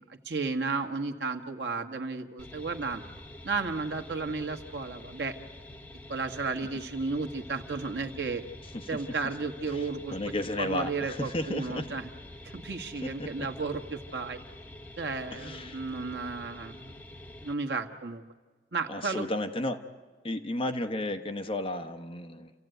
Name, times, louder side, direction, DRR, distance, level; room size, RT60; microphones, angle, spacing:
voice 1, 0.0-3.0 3.4-5.3 6.1-8.4 8.9-10.2 10.6-12.1 12.4-14.4 15.0-16.8 17.4-18.2 18.7-19.3, right 4 dB, 75° right, 4 dB, 1.5 m, -33 dB
sound 1, 2.4-17.5, left 1 dB, 10° left, 1.0 m, -47 dB
voice 2, 9.7-11.9 13.0-13.5 15.3-15.8 18.9-19.8 20.2-22.5, left 1 dB, 30° left, 7 dB, 1.1 m, -33 dB
28.5 x 15.0 x 9.2 m, 1.4 s
head